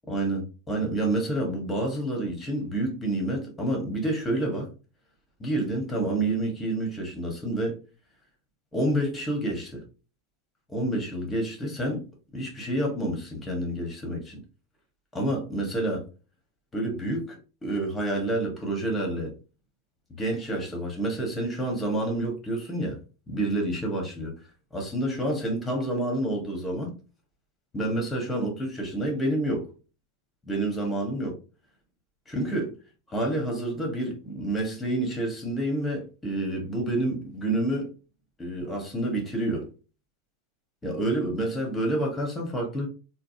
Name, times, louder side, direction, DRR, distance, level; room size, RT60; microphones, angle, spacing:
voice 1, 0.1-4.7 5.4-7.8 8.7-9.8 10.7-12.0 12.3-14.3 15.1-16.0 16.7-19.3 20.1-23.0 23.3-24.3 24.7-26.9 27.7-29.7 30.5-31.4 32.3-32.7 33.1-37.9 38.4-39.7 40.8-42.9, right 1 dB, 15° left, 1.4 m, -28 dB
3.8 x 2.2 x 2.7 m
figure-of-eight pair, 90°, 0 cm